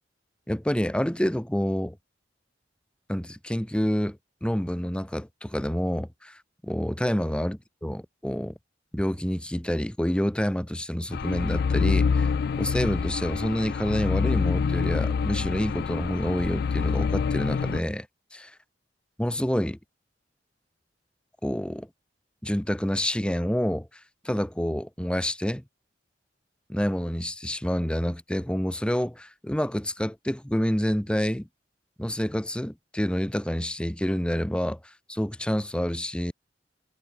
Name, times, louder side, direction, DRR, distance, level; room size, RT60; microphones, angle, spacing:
voice 1, 0.5-2.0 3.1-8.5 8.9-18.1 18.3-18.5 19.2-19.8 21.4-21.9 22.4-23.9 24.2-25.6 26.7-31.5 32.0-36.3, equal, 5° left, 0.8 m, -28 dB
sound 1, 11.1-17.8, left 5 dB, 60° left, 0.3 m, -26 dB
head